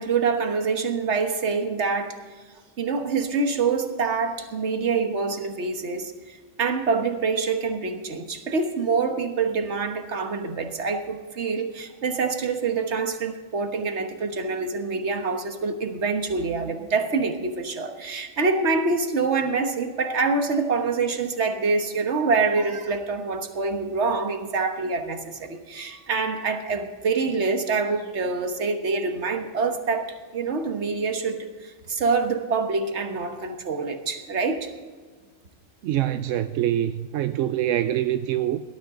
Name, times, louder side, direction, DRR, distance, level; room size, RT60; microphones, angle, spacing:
voice 1, 0.0-2.2 2.8-34.7, right 4 dB, 65° right, 1.6 m, -26 dB
voice 2, 35.8-38.6, right 12 dB, 90° right, 0.9 m, -25 dB
18.0 x 12.5 x 3.8 m
omnidirectional pair, 1.3 m